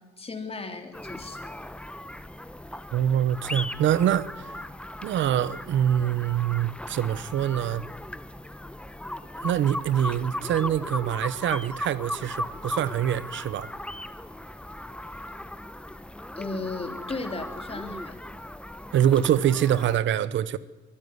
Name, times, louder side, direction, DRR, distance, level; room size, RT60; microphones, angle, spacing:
voice 1, 0.2-1.4 16.4-18.1, left 3 dB, 30° left, 3.3 m, -35 dB
sound 1, 0.9-20.0, left 1 dB, 5° left, 0.9 m, -37 dB
voice 2, 2.9-4.5 5.0-7.8 9.4-13.7 18.9-20.6, right 10 dB, 70° right, 1.0 m, -25 dB
24.0 x 13.5 x 9.6 m
cardioid pair, 90°, 20 cm